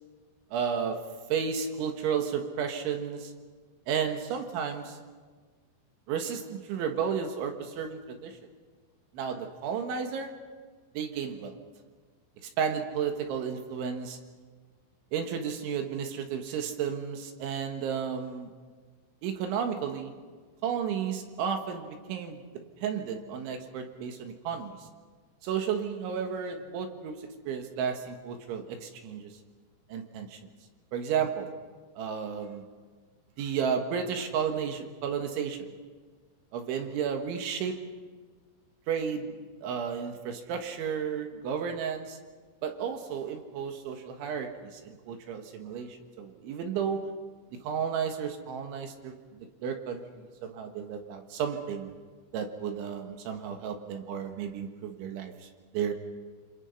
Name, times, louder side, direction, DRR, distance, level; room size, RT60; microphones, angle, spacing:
voice 1, 0.5-1.0 1.3-3.3 3.9-5.0 6.1-8.4 9.1-10.3 11.0-11.6 12.6-14.2 15.1-18.5 19.2-20.1 20.6-22.4 22.8-24.8 25.4-29.3 29.9-30.4 30.9-31.5 32.0-32.6 33.4-35.7 36.5-37.8 38.9-39.4 39.6-42.2 42.6-47.1 47.6-49.1 49.6-51.9 52.3-55.5 55.7-55.9, right 7 dB, 75° right, 4 dB, 3.9 m, -32 dB
27.5 x 26.0 x 5.6 m, 1.5 s
omnidirectional pair, 5.8 m